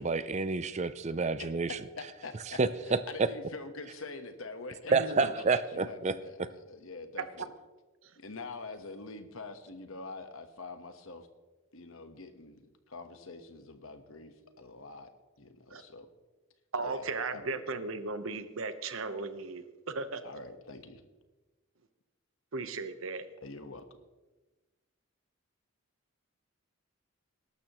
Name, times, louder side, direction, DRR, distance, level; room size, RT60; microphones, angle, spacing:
voice 1, 0.0-1.7 2.6-2.7 4.9-6.1 6.4-6.5, right 4 dB, 30° right, 14 dB, 0.5 m, -29 dB
voice 2, 2.2-2.6 2.9-7.5 8.2-11.3 11.7-15.1 15.4-16.1 16.8-17.6 20.2-21.0 23.4-23.8, left 3 dB, 70° left, 8 dB, 1.3 m, -45 dB
voice 3, 4.9-5.3 8.0-8.2 15.7-15.8 16.7-20.2 22.5-23.3, right 3 dB, 70° right, 10 dB, 1.0 m, -36 dB
21.0 x 12.0 x 3.1 m, 1.2 s
head